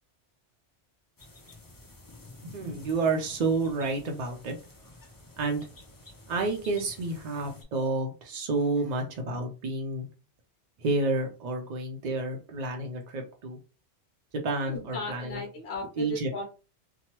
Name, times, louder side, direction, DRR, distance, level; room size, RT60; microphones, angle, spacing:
sound 1, 1.2-7.6, left 2 dB, 30° left, 0.4 m, -51 dB
voice 1, 2.4-4.5 5.4-5.7 6.3-10.1 10.8-13.6 14.3-15.4 16.0-16.3, right 3 dB, 60° right, 2 dB, 0.4 m, -30 dB
voice 2, 14.7-16.4, left 2 dB, 65° left, 0 dB, 0.9 m, -36 dB
2.9 x 2.2 x 2.9 m, 0.33 s
omnidirectional pair, 1.2 m